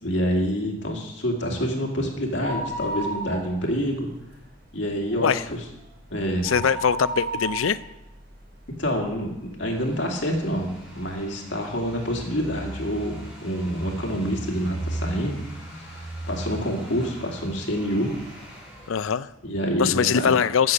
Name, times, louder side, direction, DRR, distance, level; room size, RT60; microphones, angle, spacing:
voice 1, 0.0-4.1 4.7-5.6 6.1-6.5 8.8-18.1 19.4-20.3, equal, 60° left, 0 dB, 2.4 m, -27 dB
sound 1, 2.3-3.9 4.2-4.3 4.8-9.2 9.7-9.8 10.6-10.7 10.9-11.0, right 2 dB, 55° right, 4.6 m, -33 dB
voice 2, 6.4-7.8 18.9-19.3 19.8-20.7, left 7 dB, 85° left, 16 dB, 0.5 m, -22 dB
sound 2, 9.7-18.9, right 1 dB, 5° right, 4.2 m, -38 dB
15.0 x 6.9 x 6.5 m, 0.90 s
head